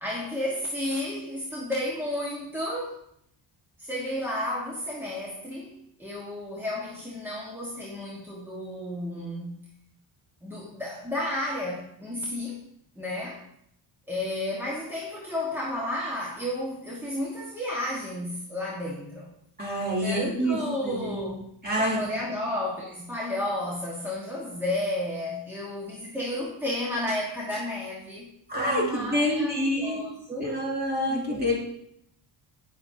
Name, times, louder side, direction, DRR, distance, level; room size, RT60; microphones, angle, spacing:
voice 1, 0.0-3.0 3.8-9.7 10.4-12.6 13.0-13.4 14.1-19.3 20.0-21.4 21.8-30.6 31.1-31.5, left 1 dB, 5° right, -6 dB, 1.5 m, -32 dB
voice 2, 19.6-21.3 21.6-22.0 28.5-30.1 30.4-31.6, equal, 20° right, -3 dB, 2.8 m, -27 dB
9.2 x 9.2 x 2.8 m, 0.74 s
cardioid pair, 105°, 47 cm